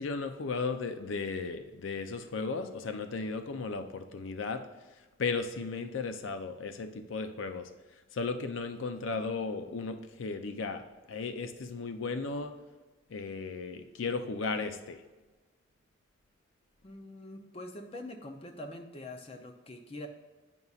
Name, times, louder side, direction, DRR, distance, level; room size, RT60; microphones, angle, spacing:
voice 1, 0.0-4.6 5.2-7.7 8.1-10.8 11.1-12.5 13.1-15.0, left 4 dB, 80° left, 8 dB, 0.5 m, -35 dB
voice 2, 16.8-20.1, left 1 dB, 30° left, 4 dB, 0.5 m, -44 dB
9.2 x 5.4 x 2.4 m, 1.2 s
head